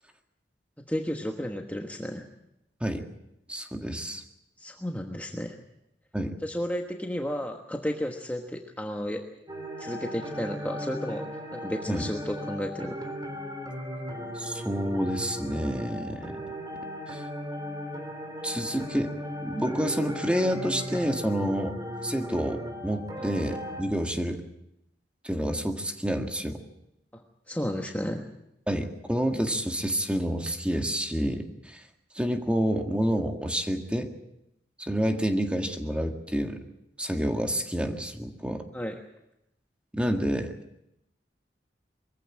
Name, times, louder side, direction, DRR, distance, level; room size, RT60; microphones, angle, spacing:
voice 1, 0.8-2.3 4.6-5.5 6.4-9.2 9.8-13.0 23.2-23.3 27.1-27.2 27.5-28.3 38.7-38.9, equal, 10° left, 2 dB, 1.3 m, -33 dB
voice 2, 3.5-4.2 6.1-6.3 11.9-12.1 14.4-16.4 17.1-17.2 18.4-19.1 19.4-21.7 22.0-24.4 25.2-26.6 28.7-31.8 32.1-34.1 34.8-36.6 37.0-38.6 39.9-40.5, equal, 5° right, 4 dB, 1.8 m, -28 dB
sound 1, 9.5-23.8, equal, 20° right, 3.4 m, -37 dB
23.0 x 15.5 x 8.7 m, 0.84 s
head